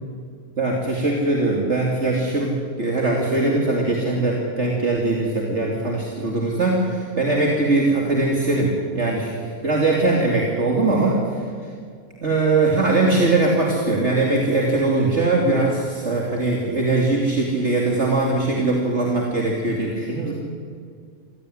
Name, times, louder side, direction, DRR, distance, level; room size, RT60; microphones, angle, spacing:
voice 1, 0.6-11.4 12.2-20.3, right 2 dB, 50° right, -1 dB, 2.9 m, -21 dB
24.5 x 16.5 x 9.9 m, 2.1 s
omnidirectional pair, 1.5 m